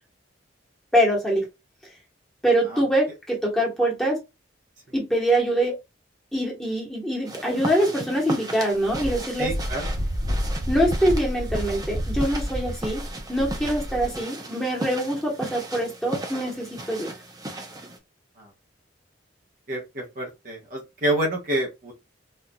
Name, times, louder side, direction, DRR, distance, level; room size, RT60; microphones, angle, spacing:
voice 1, 0.9-1.5 2.4-4.2 4.9-5.7 6.3-9.7 10.7-13.0 13.3-17.1, right 1 dB, ahead, 1.1 m, -24 dB
sound 1, 7.2-18.0, right 1 dB, 20° right, 0.5 m, -36 dB
Wind, 8.9-14.2, equal, 75° right, 1.0 m, -29 dB
voice 2, 9.4-9.9 19.7-21.9, right 1 dB, 45° right, 0.9 m, -27 dB
4.3 x 2.5 x 2.2 m
head